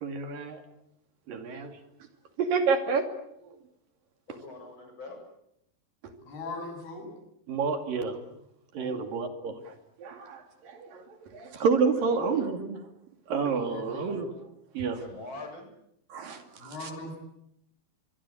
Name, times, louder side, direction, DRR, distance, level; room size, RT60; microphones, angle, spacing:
voice 1, 0.0-0.6 1.3-1.8 2.4-3.1 3.4-3.6 7.5-8.2 8.7-9.7 10.0-12.8 13.3-14.3 14.7-15.0 16.1-16.9, right 5 dB, 65° right, 6 dB, 4.1 m, -29 dB
voice 2, 4.3-5.2 8.8-9.0 11.9-12.5 14.9-15.7, left 2 dB, 30° left, 4 dB, 8.0 m, -43 dB
voice 3, 6.3-7.2 13.6-14.1 16.6-17.2, left 2 dB, 80° left, 3 dB, 9.4 m, -40 dB
24.5 x 23.5 x 8.6 m, 0.77 s
omnidirectional pair, 4.4 m